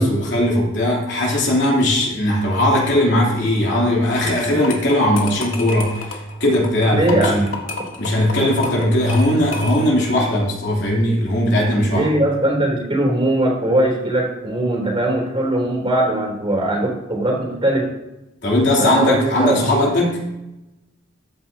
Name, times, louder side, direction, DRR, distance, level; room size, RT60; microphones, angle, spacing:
voice 1, 0.0-7.5 8.0-12.1 18.4-20.2, left 1 dB, 60° left, -3 dB, 3.0 m, -18 dB
sound 1, 4.5-10.1, left 4 dB, 85° left, 1.8 m, -31 dB
voice 2, 6.9-7.5 11.8-18.0 18.8-19.6, right 1 dB, 30° right, -1 dB, 3.1 m, -20 dB
14.0 x 9.0 x 2.8 m, 0.96 s
head